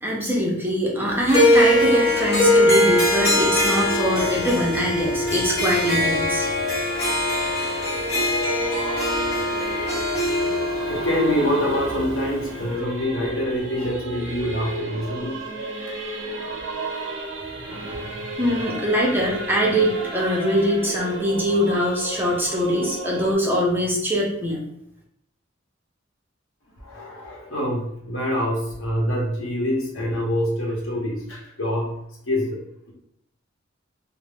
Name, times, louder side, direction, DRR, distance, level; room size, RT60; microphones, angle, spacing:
voice 1, 0.0-6.5 17.9-18.1 18.4-24.6, equal, 10° right, -4 dB, 0.5 m, -23 dB
Harp, 1.3-12.6, left 1 dB, 55° left, 1.0 m, -22 dB
Singing / Musical instrument, 4.5-23.3, right 2 dB, 65° right, 0.5 m, -34 dB
voice 2, 8.6-9.2 10.3-15.4 15.8-18.0 26.8-32.6, equal, 80° left, -2 dB, 0.8 m, -26 dB
2.3 x 2.0 x 3.4 m, 0.78 s
head